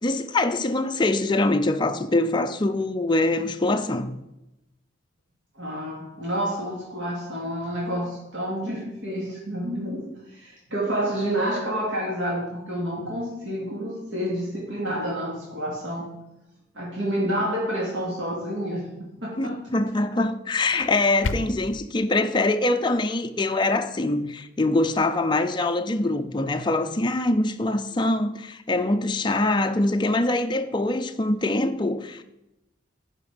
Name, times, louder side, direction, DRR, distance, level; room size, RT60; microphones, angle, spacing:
voice 1, 0.0-4.2 19.4-32.2, left 2 dB, 25° left, 0.5 m, -24 dB
voice 2, 5.5-16.1 16.7-18.9 19.2-19.6 20.7-20.8, equal, 75° right, 2.6 m, -29 dB
sound 1, 20.8-21.8, left 3 dB, 75° left, 0.5 m, -31 dB
11.0 x 4.9 x 5.1 m
head